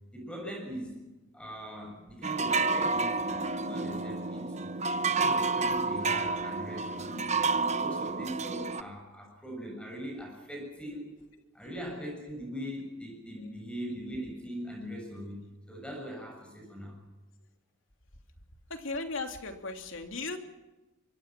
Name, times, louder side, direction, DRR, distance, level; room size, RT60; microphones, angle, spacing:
voice 1, 0.1-1.1 1.3-4.7 5.1-7.2 7.5-11.2 11.5-17.0, equal, 5° left, 0 dB, 6.9 m, -41 dB
sound 1, 2.2-8.8, right 4 dB, 35° right, 1.0 m, -30 dB
voice 2, 18.7-20.4, left 3 dB, 70° left, 5 dB, 3.0 m, -36 dB
26.0 x 23.5 x 6.0 m, 1.1 s
head